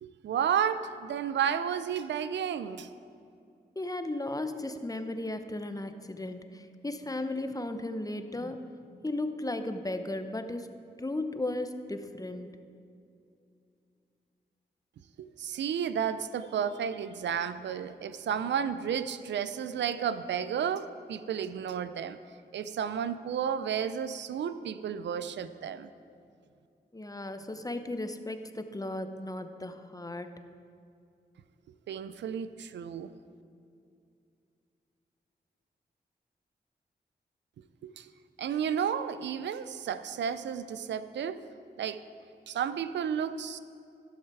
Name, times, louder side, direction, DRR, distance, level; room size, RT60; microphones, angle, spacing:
voice 1, 0.0-2.9 15.2-22.2 22.5-25.9 31.9-33.1 37.8-38.1 38.4-41.4 41.8-42.0 42.5-43.6, right 8 dB, 85° right, 13 dB, 0.4 m, -32 dB
voice 2, 3.8-10.7 11.0-12.5 26.9-30.3, left 2 dB, 20° left, 8 dB, 0.8 m, -35 dB
15.0 x 6.4 x 4.7 m, 2.5 s
cardioid pair, 40°, 18 cm